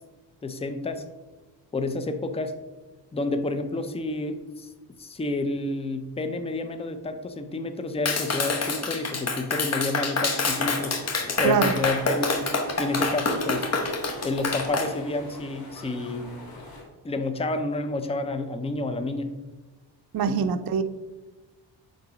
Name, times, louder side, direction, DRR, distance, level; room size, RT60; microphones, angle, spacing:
voice 1, 0.4-1.0 1.7-2.5 3.1-4.7 5.0-11.0 11.4-12.4 12.8-13.7 14.2-16.3 17.0-19.4 20.2-20.4, left 2 dB, 15° left, 8 dB, 0.5 m, -29 dB
Clapping, 8.1-14.9, left 3 dB, 35° left, 1.0 m, -27 dB
sound 1, 10.4-16.8, left 2 dB, 55° left, 2.0 m, -42 dB
voice 2, 11.4-11.7 20.1-20.8, right 6 dB, 55° right, 9 dB, 0.6 m, -23 dB
6.9 x 3.9 x 4.9 m, 1.2 s
cardioid pair, 105°, 43 cm